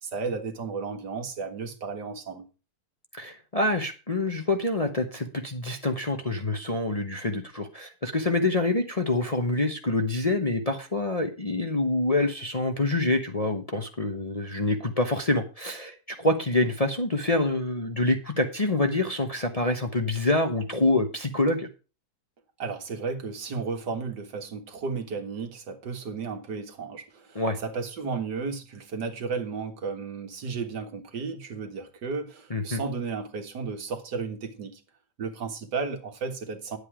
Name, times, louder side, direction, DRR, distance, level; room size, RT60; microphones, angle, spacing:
voice 1, 0.0-2.5 22.6-34.8 35.2-36.8, right 4 dB, 75° right, 2.1 m, -33 dB
voice 2, 3.2-21.7 27.3-27.6 32.5-32.8, left 2 dB, 25° left, 0.9 m, -26 dB
11.0 x 8.2 x 4.8 m
omnidirectional pair, 1.8 m